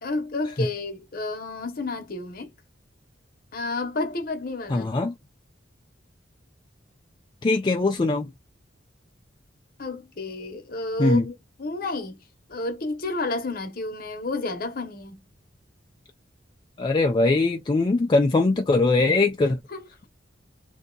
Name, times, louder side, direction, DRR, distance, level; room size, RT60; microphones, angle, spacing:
voice 1, 0.0-2.5 3.5-4.9 9.8-12.2 12.5-15.2 19.7-20.1, left 2 dB, 50° left, 0.8 m, -31 dB
voice 2, 4.7-5.1 7.4-8.3 11.0-11.2 16.8-19.6, left 3 dB, 25° left, 0.3 m, -21 dB
2.7 x 2.2 x 3.8 m
head